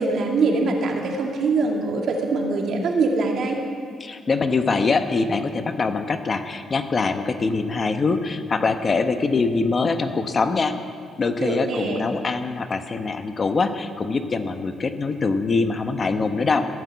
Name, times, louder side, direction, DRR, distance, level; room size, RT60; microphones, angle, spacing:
voice 1, 0.0-3.6 11.4-12.0, right 3 dB, 65° right, 1 dB, 2.3 m, -23 dB
voice 2, 4.0-10.7 11.2-16.7, left 4 dB, 40° left, 8 dB, 1.0 m, -23 dB
15.5 x 8.5 x 8.2 m, 2.1 s
cardioid pair, 90°, 0 cm